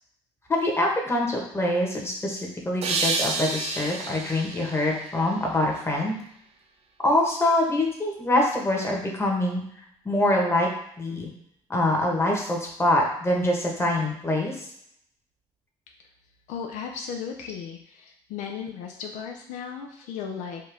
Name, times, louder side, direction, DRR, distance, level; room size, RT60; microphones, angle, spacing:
voice 1, 0.5-6.2 7.0-9.6 10.0-10.7 11.0-11.3 11.7-14.7, left 1 dB, 20° left, -1 dB, 1.3 m, -24 dB
sound 1, 2.8-6.0, right 3 dB, 55° right, 0.7 m, -30 dB
voice 2, 16.5-20.6, left 7 dB, 80° left, 2 dB, 0.5 m, -36 dB
4.5 x 2.5 x 3.5 m, 0.72 s
supercardioid pair, 80°, 13 cm